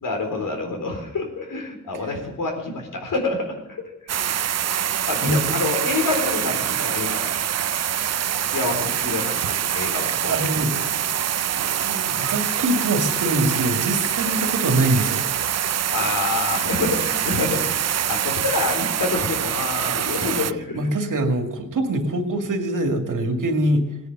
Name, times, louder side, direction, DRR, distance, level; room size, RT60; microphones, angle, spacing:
voice 1, 0.0-3.8 4.0-4.4 5.1-7.3 8.4-10.4 15.9-20.8, left 3 dB, 90° left, 3 dB, 3.9 m, -27 dB
sound 1, 4.1-20.5, right 10 dB, 55° right, 0.5 m, -25 dB
voice 2, 4.4-4.7 5.2-5.5 10.3-11.0 11.5-15.3 20.7-23.9, right 1 dB, 80° right, 5 dB, 2.3 m, -24 dB
18.0 x 10.0 x 6.7 m, 0.96 s
wide cardioid pair, 100°, 31 cm